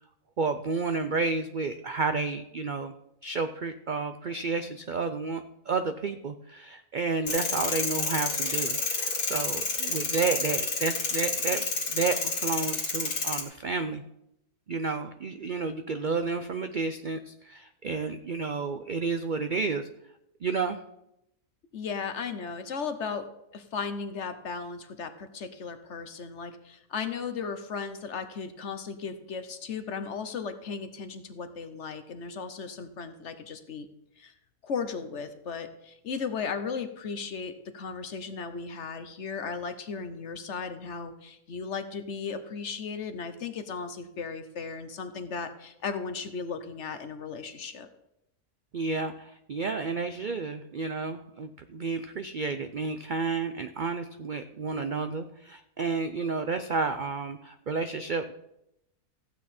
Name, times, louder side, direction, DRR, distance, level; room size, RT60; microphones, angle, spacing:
voice 1, 0.4-2.9 3.2-14.0 14.7-19.9 20.4-20.8 48.7-58.3, right 4 dB, 75° right, 9 dB, 0.4 m, -31 dB
sound 1, 7.3-13.4, left 3 dB, 80° left, 2.5 m, -30 dB
voice 2, 21.7-33.9 34.2-34.3 34.6-47.9, left 5 dB, 55° left, 9 dB, 1.1 m, -36 dB
15.0 x 8.7 x 4.2 m, 0.83 s
omnidirectional pair, 1.6 m